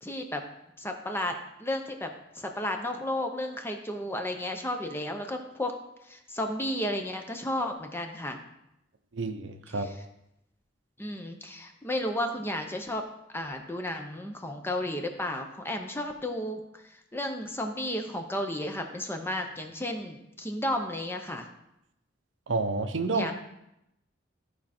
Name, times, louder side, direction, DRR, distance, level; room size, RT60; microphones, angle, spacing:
voice 1, 0.0-0.4 0.8-2.1 2.3-5.7 6.0-8.4 9.8-9.9 11.0-13.0 13.3-21.5 23.1-23.3, left 1 dB, 10° left, 4 dB, 0.8 m, -33 dB
voice 2, 9.1-9.9 22.5-23.3, right 3 dB, 75° right, 8 dB, 0.7 m, -29 dB
14.0 x 4.8 x 4.3 m, 0.84 s
head